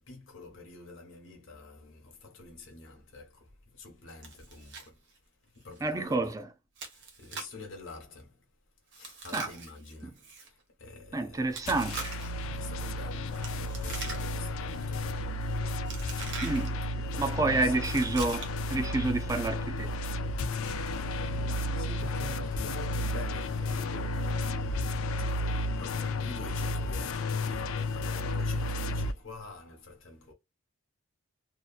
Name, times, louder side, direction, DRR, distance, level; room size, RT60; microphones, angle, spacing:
voice 1, 0.0-5.1 5.4-6.4 6.9-8.4 8.9-11.6 12.5-15.5 17.1-17.8 20.5-30.3, left 3 dB, 60° left, 0.7 m, -47 dB
Chewing mastication, 4.2-4.9 5.2-5.3 5.8-5.9 6.8-7.6 8.9-10.5 11.5-12.4 13.3-14.5 14.8-15.2 15.9-16.7 17.8-18.7, right 4 dB, 55° right, 0.8 m, -42 dB
voice 2, 5.8-6.5 9.3-9.5 11.1-12.1 16.4-16.7 17.2-19.9, right 2 dB, 15° right, 0.3 m, -29 dB
sound 1, 11.7-29.1, left 1 dB, 80° left, 0.4 m, -32 dB
2.8 x 2.1 x 2.3 m
head